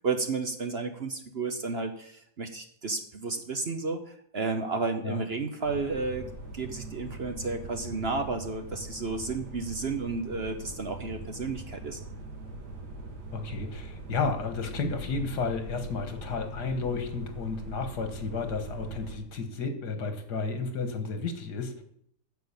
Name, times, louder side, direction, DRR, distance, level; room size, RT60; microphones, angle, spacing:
voice 1, 0.0-4.0 4.3-12.0, right 3 dB, 45° right, 7 dB, 1.0 m, -32 dB
sound 1, 5.6-19.2, right 2 dB, 80° right, 2.4 m, -41 dB
voice 2, 13.3-21.8, left 4 dB, 80° left, 7 dB, 2.0 m, -32 dB
9.5 x 7.4 x 7.1 m, 0.66 s
omnidirectional pair, 1.7 m